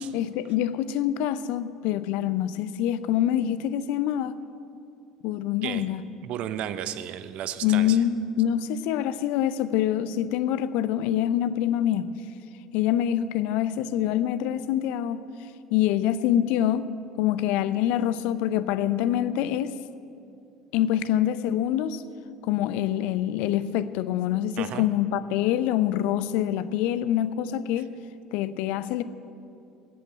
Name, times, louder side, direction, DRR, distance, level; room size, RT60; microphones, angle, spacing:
voice 1, 0.1-4.4 5.2-6.0 7.6-12.1 12.7-15.3 15.7-16.9 17.2-19.8 20.7-22.0 22.4-27.9 28.3-29.0, left 11 dB, 60° left, 14 dB, 0.6 m, -25 dB
voice 2, 6.2-8.0 24.6-24.9, right 10 dB, 55° right, 13 dB, 0.7 m, -33 dB
20.0 x 8.2 x 7.8 m, 2.6 s
figure-of-eight pair, 65°, 2 cm